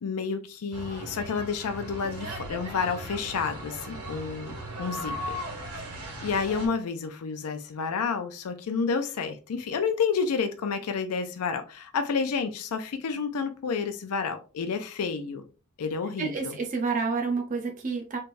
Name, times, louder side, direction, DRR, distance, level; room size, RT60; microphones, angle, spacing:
voice 1, 0.0-4.5 4.8-5.4 6.2-15.4 15.8-16.6, left 5 dB, 90° left, 0.5 m, -30 dB
sound 1, 0.7-6.7, right 1 dB, 90° right, 1.6 m, -38 dB
voice 2, 16.2-18.2, right 4 dB, 35° right, 0.5 m, -29 dB
3.3 x 3.2 x 2.5 m
head